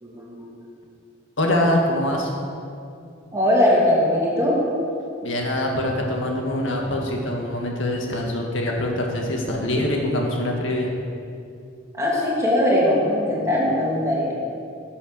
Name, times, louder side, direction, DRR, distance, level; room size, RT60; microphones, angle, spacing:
voice 1, 0.0-0.5 3.3-4.6 11.9-14.3, left 1 dB, 15° right, -5 dB, 2.4 m, -20 dB
voice 2, 1.4-2.3 5.2-10.9, left 1 dB, 70° left, 0 dB, 1.8 m, -24 dB
11.5 x 7.0 x 6.5 m, 2.4 s
head